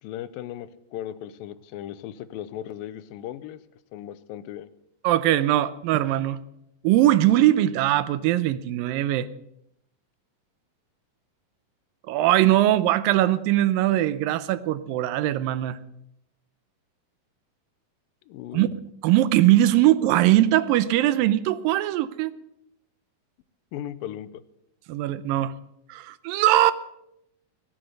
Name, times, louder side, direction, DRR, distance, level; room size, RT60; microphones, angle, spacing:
voice 1, 0.0-3.6 3.9-4.7 18.3-18.7 23.7-24.4, left 11 dB, 85° left, 15 dB, 2.5 m, -37 dB
voice 2, 5.0-6.4 6.8-9.3 12.1-15.8 18.5-18.7 19.0-22.3 24.9-25.5 25.9-26.7, right 14 dB, 90° right, 15 dB, 2.5 m, -21 dB
16.5 x 9.2 x 7.9 m, 0.81 s
omnidirectional pair, 4.0 m